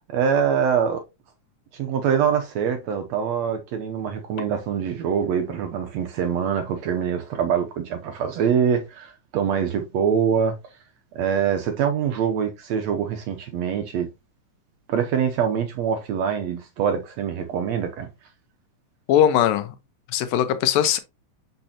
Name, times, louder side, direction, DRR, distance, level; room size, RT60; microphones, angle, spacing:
voice 1, 0.1-1.0 1.7-10.6 11.1-14.1 14.9-18.1, right 7 dB, 75° right, 1.6 m, -24 dB
voice 2, 19.1-19.8 20.1-21.0, left 10 dB, 85° left, 2.6 m, -20 dB
6.6 x 5.8 x 2.8 m
omnidirectional pair, 3.9 m